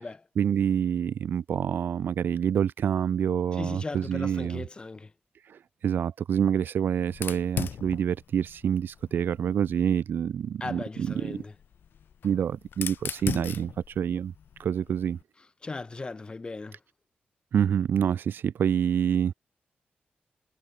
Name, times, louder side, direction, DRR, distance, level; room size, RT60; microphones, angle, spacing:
voice 1, 0.4-4.6 5.5-10.8 11.2-11.4 12.2-14.3 14.6-15.2 17.5-19.3, right 8 dB, 70° right, 0.4 m, -27 dB
voice 2, 3.5-5.1 10.6-11.5 15.4-16.8, left 3 dB, 25° left, 3.1 m, -38 dB
Fire, 7.1-9.8 11.0-15.2, left 8 dB, 75° left, 1.1 m, -39 dB
wide cardioid pair, 130°, 4 cm